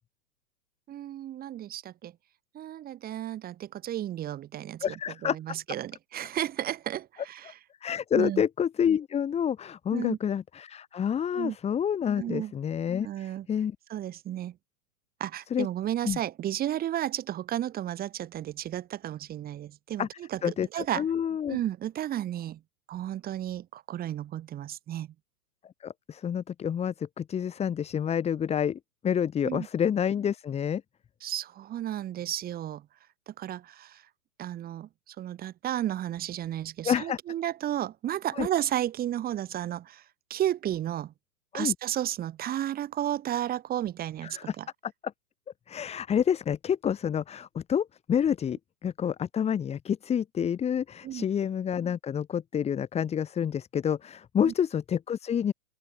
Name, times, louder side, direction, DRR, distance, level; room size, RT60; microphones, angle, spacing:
voice 1, 0.9-2.1 2.5-7.6 8.1-8.4 9.9-10.2 11.3-11.6 12.2-12.5 13.0-13.5 13.9-14.6 15.2-21.1 21.5-22.6 22.9-25.1 29.4-29.7 31.2-32.9 33.3-34.0 34.4-40.0 40.3-41.1 41.5-44.7 51.0-51.3 54.4-54.5, right 12 dB, 20° right, 5.2 m, -33 dB
voice 2, 4.8-5.4 7.8-13.7 15.5-15.7 16.0-16.2 20.0-20.1 20.4-21.6 25.8-30.8 36.8-37.2 38.4-38.5 41.5-41.7 44.2-44.4 45.7-55.5, left 8 dB, 15° left, 3.3 m, -28 dB
open air
hypercardioid pair, 155°, 45 cm